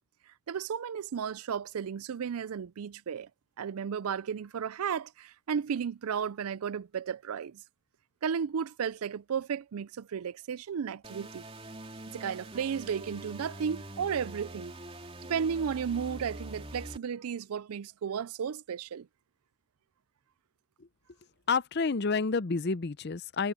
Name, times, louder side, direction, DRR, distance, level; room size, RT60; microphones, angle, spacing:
voice 1, 0.5-3.3 3.6-7.6 8.2-11.4 12.1-14.7 15.3-19.1, right 7 dB, 90° right, 0.4 m, -34 dB
sound 1, 11.0-17.0, right 1 dB, 25° right, 3.5 m, -44 dB
voice 2, 21.5-23.5, left 4 dB, 50° left, 0.6 m, -29 dB
head